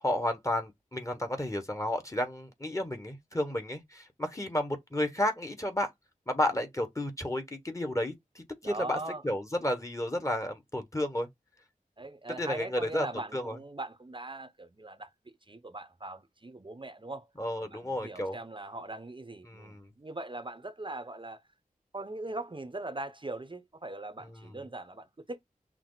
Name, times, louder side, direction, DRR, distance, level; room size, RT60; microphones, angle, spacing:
voice 1, 0.0-5.9 6.3-9.0 9.2-11.3 12.4-13.1 13.3-13.6 17.4-18.4 19.5-19.9, left 1 dB, 20° left, 1.3 m, -32 dB
voice 2, 8.6-9.2 12.0-17.3 17.6-21.4 21.9-25.4, right 2 dB, 35° right, 0.8 m, -41 dB
5.9 x 2.0 x 3.9 m
cardioid pair, 40°, 15 cm